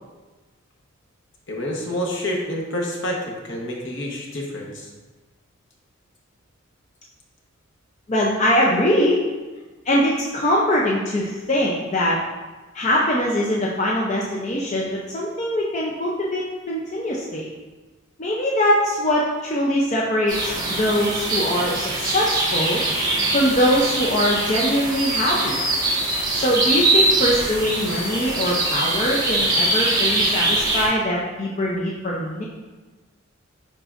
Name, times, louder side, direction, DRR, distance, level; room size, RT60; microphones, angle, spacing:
voice 1, 1.5-4.9, left 1 dB, 65° left, -1 dB, 1.1 m, -28 dB
voice 2, 8.1-9.2 9.9-12.2 12.7-17.5 18.2-22.8 23.3-25.6 26.3-32.4, equal, 35° left, -3 dB, 0.5 m, -22 dB
sound 1, 20.3-30.9, right 2 dB, 20° right, 1.4 m, -22 dB
10.0 x 3.8 x 2.5 m, 1.3 s
head